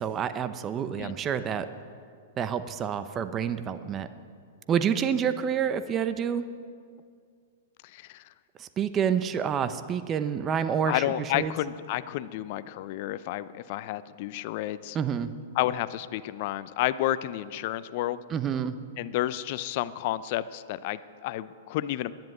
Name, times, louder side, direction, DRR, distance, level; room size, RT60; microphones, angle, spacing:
voice 1, 0.0-1.7 2.4-4.1 4.7-6.4 8.6-11.5 14.9-15.3 18.3-18.7, right 8 dB, 25° right, 11 dB, 0.7 m, -28 dB
voice 2, 7.9-8.2 10.9-15.0 15.5-18.2 19.0-22.1, left 14 dB, 50° left, 16 dB, 0.5 m, -31 dB
10.5 x 10.5 x 9.6 m, 2.2 s
hypercardioid pair, 110°, 0 cm